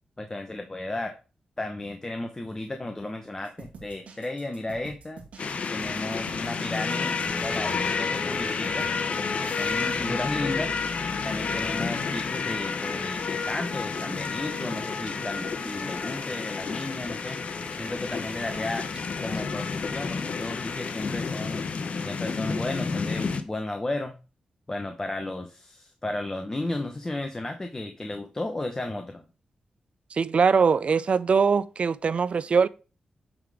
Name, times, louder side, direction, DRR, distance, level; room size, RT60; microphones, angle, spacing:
voice 1, 0.2-1.2 1.6-5.2 5.7-8.9 9.6-10.8 11.2-17.4 17.7-18.9 19.2-21.6 22.0-24.2 24.7-29.2, left 2 dB, 25° left, 1.0 m, -34 dB
sound 1, 3.4-9.9, right 4 dB, 85° right, 2.0 m, -47 dB
sound 2, 5.4-23.4, left 5 dB, 65° left, 0.9 m, -30 dB
sound 3, 9.8-11.1 11.4-11.5 11.7-11.8 12.8-12.9 13.8-16.1 16.7-16.8 17.1-17.2 17.6-18.6 18.9-19.0 19.3-19.5 20.3-20.4, right 2 dB, 30° right, 1.8 m, -45 dB
voice 2, 30.1-32.7, right 5 dB, 55° right, 0.5 m, -22 dB
8.9 x 3.9 x 4.8 m
cardioid pair, 65°, 2 cm